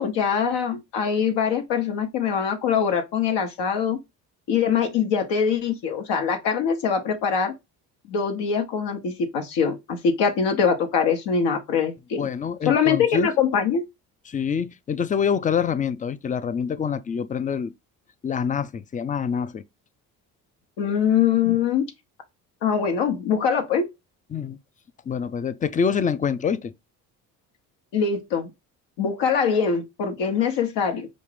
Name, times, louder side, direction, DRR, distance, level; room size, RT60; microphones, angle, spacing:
voice 1, 0.0-4.0 4.5-7.5 8.1-12.3 12.7-13.8 20.8-21.9 22.6-23.9 27.9-28.5 29.0-31.1, left 6 dB, 65° left, 0.9 m, -23 dB
voice 2, 12.2-13.3 14.3-17.7 18.2-19.6 24.3-24.6 25.1-26.7, left 7 dB, 20° left, 0.3 m, -26 dB
5.2 x 2.5 x 3.3 m
hypercardioid pair, 60°, 45 cm